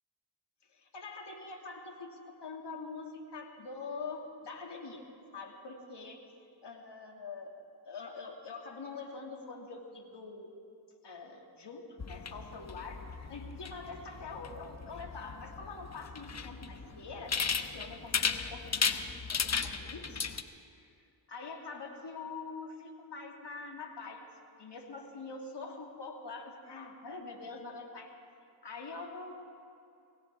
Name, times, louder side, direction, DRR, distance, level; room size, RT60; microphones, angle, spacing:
voice 1, 0.7-5.1 5.3-6.2 6.6-7.5 7.8-10.5 11.0-19.0 19.3-20.3 20.8-20.9 21.3-24.2 24.6-28.1 28.6-29.5, left 4 dB, 60° left, 1 dB, 2.4 m, -44 dB
sound 1, 12.0-20.4, left 6 dB, 35° left, 0.9 m, -36 dB
21.5 x 17.0 x 3.6 m, 2.5 s
cardioid pair, 55°, 48 cm